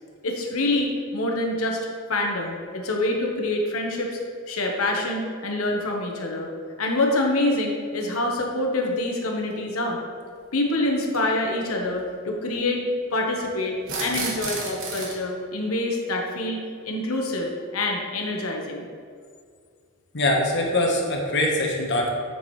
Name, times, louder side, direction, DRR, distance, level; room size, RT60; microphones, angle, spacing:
voice 1, 0.2-1.8 2.1-4.2 4.5-6.5 6.8-10.0 10.5-12.8 13.1-17.5 17.7-18.8, left 2 dB, 75° left, 1 dB, 1.2 m, -26 dB
sound 1, 9.5-9.6 11.0-11.2 13.8-15.2, right 3 dB, 65° right, 1.4 m, -31 dB
voice 2, 20.1-22.1, left 1 dB, 55° left, 0 dB, 1.2 m, -23 dB
7.1 x 7.0 x 3.2 m, 2.1 s
head